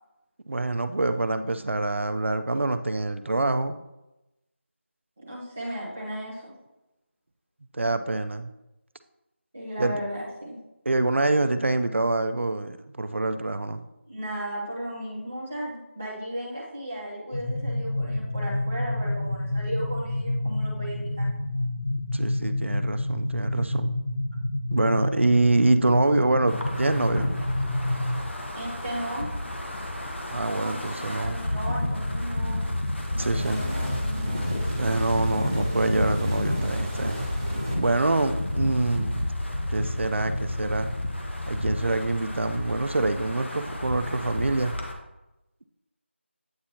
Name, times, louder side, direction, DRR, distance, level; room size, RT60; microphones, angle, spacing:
voice 1, 0.5-3.8 7.7-8.5 9.8-10.0 10.9-13.8 22.1-23.9 24.7-27.3 30.3-31.4 33.2-33.7 34.8-37.2 37.7-39.3 39.7-40.9 41.5-44.7, right 2 dB, 70° right, 10 dB, 0.5 m, -25 dB
voice 2, 5.2-6.5 9.5-10.6 14.1-21.3 28.5-29.3 30.5-32.7 33.1-33.6 33.9-34.3, right 1 dB, 5° right, -7 dB, 0.3 m, -35 dB
sound 1, 17.3-28.2, left 1 dB, 90° left, 1.1 m, -28 dB
Wind, 26.5-44.9, left 1 dB, 65° left, 1.1 m, -31 dB
sound 2, 33.4-37.8, right 1 dB, 20° right, 0.7 m, -34 dB
8.5 x 4.3 x 2.8 m, 0.96 s
figure-of-eight pair, 175°, 7 cm